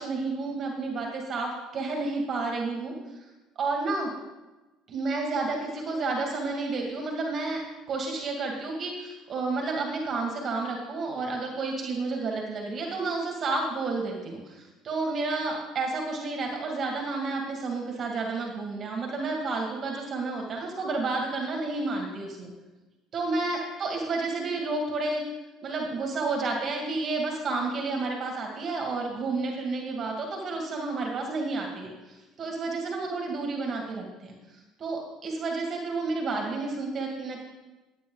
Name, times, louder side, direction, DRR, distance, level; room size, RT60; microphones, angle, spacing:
voice 1, 0.0-2.9 3.6-4.1 4.9-7.6 7.9-22.5 23.1-25.2 25.6-34.4 34.8-37.4, right 3 dB, 45° right, 1 dB, 2.3 m, -31 dB
12.0 x 8.8 x 3.9 m, 1.1 s
hypercardioid pair, 75°, 0 cm